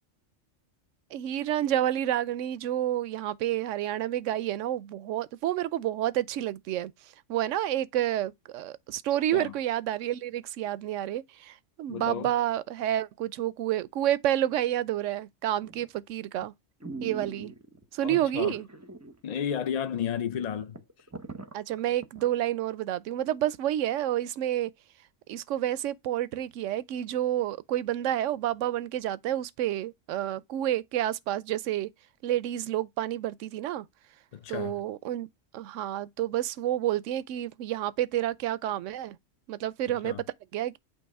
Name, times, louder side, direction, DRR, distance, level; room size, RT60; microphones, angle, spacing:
voice 1, 1.1-6.9 7.3-16.5 17.0-17.5 17.9-18.7 21.5-24.7 25.3-31.9 32.2-33.9 34.5-35.3 35.5-39.2 39.5-40.2 40.5-40.8, right 12 dB, 80° right, 0.9 m, -29 dB
voice 2, 11.9-12.3 18.0-18.5 19.2-20.8 34.3-34.8 40.0-40.2, left 8 dB, 50° left, 0.5 m, -32 dB
sound 1, 15.6-16.0 16.4-16.5 16.8-17.9 18.5-19.2 19.5-19.6 20.1-20.2 20.4-22.3 22.7-22.8, right 3 dB, 15° right, 0.6 m, -42 dB
8.5 x 2.8 x 4.7 m
omnidirectional pair, 1.3 m